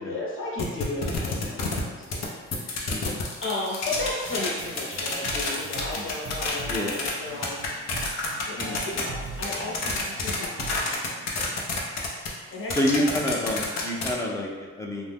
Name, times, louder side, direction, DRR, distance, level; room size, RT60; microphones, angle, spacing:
voice 1, 0.0-2.3 2.5-3.0 3.4-7.6 7.8-8.0 8.5-11.6 12.3-12.8, left 2 dB, 45° left, -5 dB, 1.0 m, -35 dB
sound 1, 0.6-2.2 2.5-7.1 7.4-14.1, left 4 dB, 60° left, 0.6 m, -29 dB
voice 2, 2.9-3.2 6.7-6.9 8.6-8.8 12.8-15.1, left 1 dB, 10° left, -2 dB, 0.5 m, -28 dB
sound 2, 4.0-11.0, right 3 dB, 45° right, 0.5 m, -41 dB
2.6 x 2.1 x 3.4 m, 1.4 s
cardioid pair, 90°, 30 cm